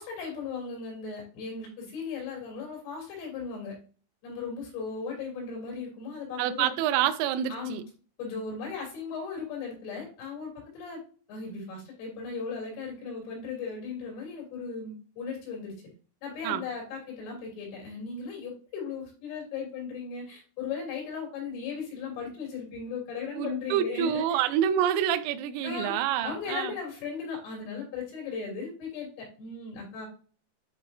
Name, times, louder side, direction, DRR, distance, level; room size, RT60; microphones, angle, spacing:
voice 1, 0.0-3.8 4.2-6.7 7.5-7.8 8.2-11.0 11.3-15.8 16.2-24.5 24.8-25.0 25.6-25.9 26.2-30.1, left 5 dB, 80° left, 5.7 m, -37 dB
voice 2, 6.4-7.8 16.4-16.7 23.3-26.7, right 10 dB, 90° right, 2.5 m, -27 dB
10.5 x 4.2 x 2.7 m
omnidirectional pair, 5.8 m